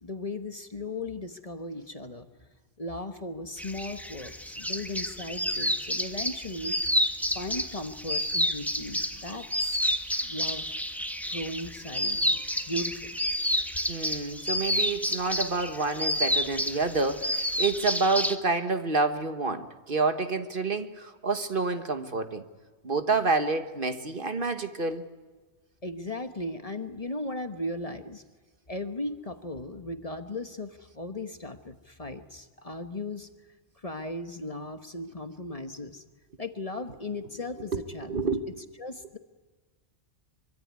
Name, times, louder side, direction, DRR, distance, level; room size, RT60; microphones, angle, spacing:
voice 1, 0.0-2.3 2.8-6.8 7.3-9.8 10.2-10.7 11.2-13.2 25.8-28.2 28.7-33.3 33.8-36.0 36.4-38.2 38.8-39.2, left 2 dB, 30° left, 8 dB, 1.3 m, -37 dB
sound 1, 3.6-18.4, equal, ahead, 1.4 m, -30 dB
voice 2, 13.9-22.4 22.8-25.0 37.7-37.8 38.1-38.4, right 3 dB, 50° right, 9 dB, 1.5 m, -28 dB
25.0 x 24.0 x 9.6 m, 1.3 s
omnidirectional pair, 1.2 m